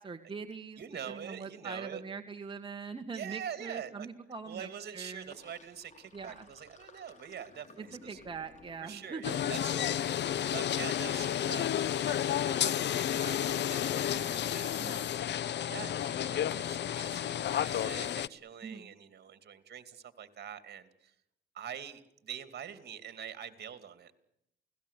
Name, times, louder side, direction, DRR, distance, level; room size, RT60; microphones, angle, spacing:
voice 1, 0.0-0.8 1.1-5.3 6.1-6.5 7.8-9.3 14.8-15.0 18.6-18.9, right 5 dB, 25° right, 5 dB, 1.8 m, -42 dB
voice 2, 0.8-2.0 3.1-4.1 4.4-8.2 8.8-15.2 15.7-21.1 21.5-24.1, right 8 dB, 55° right, 11 dB, 2.7 m, -45 dB
Sink (filling or washing), 5.1-11.4, left 3 dB, 35° left, 4.5 m, -58 dB
sound 1, 9.2-18.3, left 10 dB, 60° left, 0.8 m, -31 dB
29.0 x 18.0 x 8.4 m, 0.81 s
cardioid pair, 90°, 20 cm